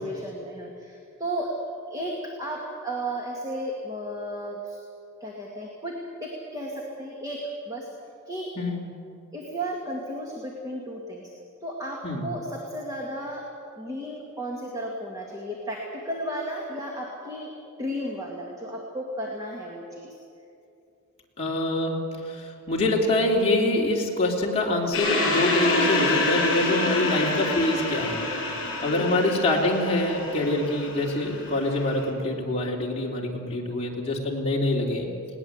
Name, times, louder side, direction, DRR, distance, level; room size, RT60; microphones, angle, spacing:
voice 1, 0.0-1.6 1.9-4.8 5.2-7.9 8.3-8.5 9.3-11.2 11.6-13.5 13.8-17.5 17.8-20.2 28.9-29.3, right 1 dB, 15° right, -2 dB, 2.2 m, -34 dB
voice 2, 21.4-28.3 28.8-35.1, left 2 dB, 25° left, -2 dB, 3.2 m, -25 dB
sound 1, 24.9-32.0, left 2 dB, 55° left, 6.9 m, -27 dB
20.5 x 18.5 x 8.1 m, 2.6 s
head